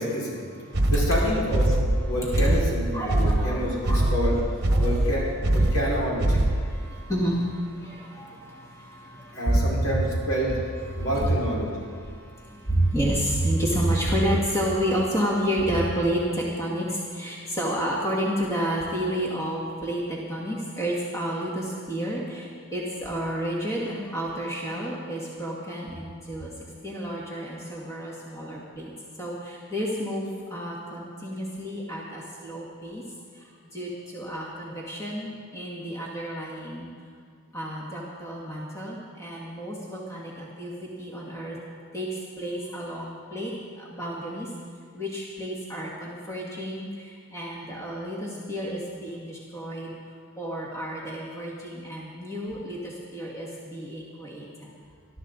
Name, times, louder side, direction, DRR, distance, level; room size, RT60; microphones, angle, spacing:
voice 1, 0.0-0.4 0.9-1.7 2.0-4.4 4.8-5.2 5.5-6.4 8.2-8.3 9.3-10.6 10.9-11.7, equal, 75° left, -5 dB, 5.0 m, -28 dB
voice 2, 0.6-1.0 2.2-2.3 2.9-5.1 5.6-6.0 6.3-9.9 10.8-11.3 11.8-26.5 26.8-28.9 29.2-33.0 33.3-36.9 37.5-41.6 41.9-44.5 44.9-49.9 50.4-54.7, equal, 15° left, -5 dB, 2.1 m, -30 dB
sound 1, 0.7-6.8, right 1 dB, 50° right, 1.2 m, -23 dB
20.5 x 13.0 x 4.0 m, 2.1 s
head